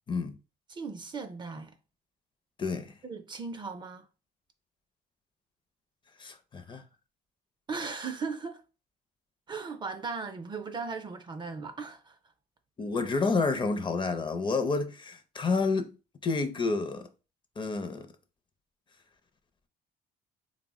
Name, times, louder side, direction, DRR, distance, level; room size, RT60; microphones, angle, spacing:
voice 1, 0.7-1.7 3.0-4.1 7.7-8.6 9.5-12.2, right 4 dB, 25° right, 0.4 m, -37 dB
voice 2, 2.6-2.9 6.2-6.8 12.8-15.9 16.2-17.0 17.6-18.1, left 4 dB, 30° left, 0.5 m, -29 dB
3.6 x 2.0 x 3.5 m
cardioid pair, 110°, 17 cm